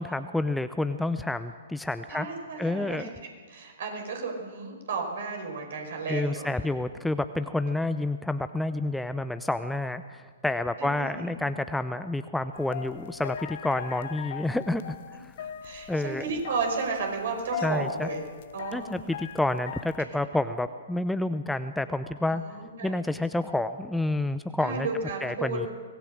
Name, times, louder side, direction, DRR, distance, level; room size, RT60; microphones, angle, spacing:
voice 1, 0.0-2.3 2.6-3.1 6.1-15.3 15.9-16.3 17.6-18.1 18.7-22.4 22.8-24.9 25.2-25.7, left 2 dB, 5° left, 11 dB, 0.6 m, -29 dB
voice 2, 2.1-3.1 3.5-6.5 10.8-11.4 15.4-18.2 18.5-19.0 22.3-23.0 24.6-25.7, right 4 dB, 55° right, 3 dB, 5.3 m, -33 dB
sound 1, 12.5-20.1, left 10 dB, 50° left, 0.8 m, -40 dB
24.0 x 19.0 x 6.5 m, 1.6 s
figure-of-eight pair, 115°, 0 cm